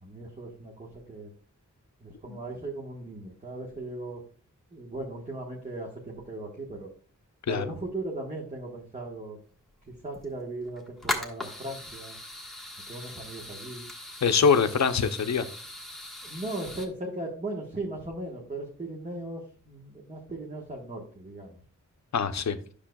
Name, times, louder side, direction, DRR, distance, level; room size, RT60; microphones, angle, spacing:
voice 1, 0.0-1.3 2.0-4.2 4.7-6.9 7.5-9.4 9.9-12.2 12.9-13.8 16.2-21.6, right 2 dB, 25° right, -2 dB, 1.3 m, -38 dB
sound 1, 9.6-9.7 10.0-10.2 10.7-16.9, left 1 dB, ahead, 1.4 m, -39 dB
voice 2, 14.2-15.5 22.1-22.6, left 6 dB, 60° left, 9 dB, 0.7 m, -23 dB
10.0 x 6.6 x 2.3 m, 0.43 s
wide cardioid pair, 120°, 32 cm